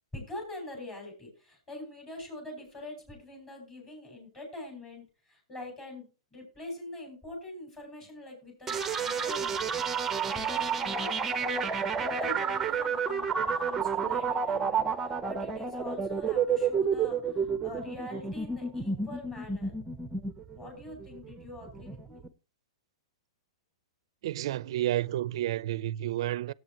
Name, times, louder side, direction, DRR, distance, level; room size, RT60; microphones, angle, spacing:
voice 1, 0.1-10.0 10.3-19.7 20.5-22.2, left 2 dB, 15° left, 6.3 m, -44 dB
sound 1, 8.7-22.3, right 6 dB, 10° right, 0.8 m, -30 dB
voice 2, 24.2-26.5, right 13 dB, 55° right, 0.5 m, -30 dB
18.0 x 8.0 x 3.0 m
hypercardioid pair, 155°, 3 cm